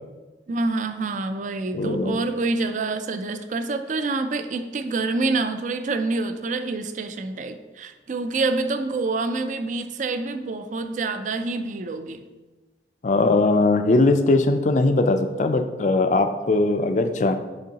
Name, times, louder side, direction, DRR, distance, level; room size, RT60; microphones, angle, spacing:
voice 1, 0.5-12.2, right 3 dB, 45° right, 9 dB, 0.4 m, -27 dB
voice 2, 1.7-2.2 13.0-17.4, left 2 dB, 45° left, 7 dB, 0.4 m, -20 dB
9.8 x 3.7 x 2.8 m, 1.2 s
head